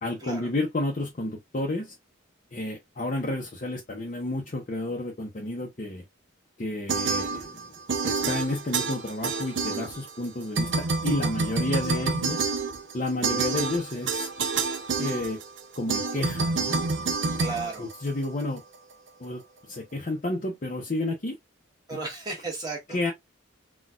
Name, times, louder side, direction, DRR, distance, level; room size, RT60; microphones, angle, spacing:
voice 1, 0.0-1.9 2.5-6.0 6.6-7.8 8.0-12.5 12.9-14.3 15.0-15.4 15.8-16.8 17.8-18.6 19.2-19.4 19.7-21.4 22.9-23.1, left 2 dB, 40° left, 0.6 m, -31 dB
sound 1, 6.9-7.6 7.9-10.3 10.5-18.4, right 4 dB, 65° right, 0.5 m, -28 dB
voice 2, 11.4-12.1 17.4-17.9 21.9-23.0, right 3 dB, 20° right, 1.2 m, -36 dB
4.1 x 2.3 x 2.3 m
head